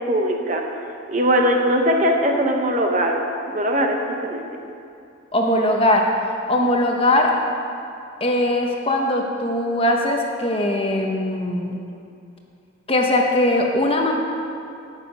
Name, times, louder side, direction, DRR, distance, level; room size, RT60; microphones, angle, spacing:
voice 1, 0.1-0.6 1.1-3.2 3.5-4.0 4.2-4.4, equal, 35° right, 2 dB, 1.0 m, -20 dB
voice 2, 5.3-6.0 6.5-7.3 8.2-11.8 12.9-14.1, left 1 dB, 25° left, 1 dB, 1.0 m, -20 dB
17.0 x 6.7 x 5.5 m, 2.5 s
head